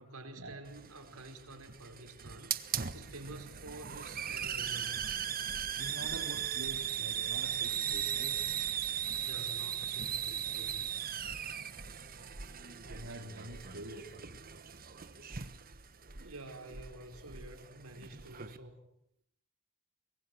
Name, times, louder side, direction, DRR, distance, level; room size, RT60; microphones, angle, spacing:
voice 1, 0.0-5.0 9.2-11.0 16.2-18.8, right 1 dB, 85° right, 4.8 m, -49 dB
Hiss, 0.7-18.6, right 9 dB, 40° right, 1.3 m, -38 dB
voice 2, 5.8-8.4 12.7-14.4, right 1 dB, 65° right, 3.2 m, -46 dB
25.0 x 22.0 x 7.7 m
head